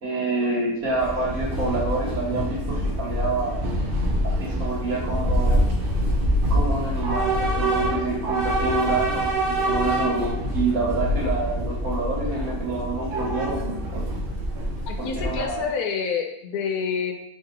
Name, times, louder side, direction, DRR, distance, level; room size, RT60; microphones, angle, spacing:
voice 1, 0.0-3.6 4.4-5.6 6.5-14.0 15.0-15.7, right 2 dB, 70° right, -5 dB, 1.8 m, -27 dB
Train / Subway metro underground, 0.8-15.7, equal, 55° right, 0.6 m, -25 dB
voice 2, 14.9-17.1, left 6 dB, 85° left, 4 dB, 1.1 m, -28 dB
3.3 x 2.7 x 3.8 m, 0.75 s
omnidirectional pair, 1.6 m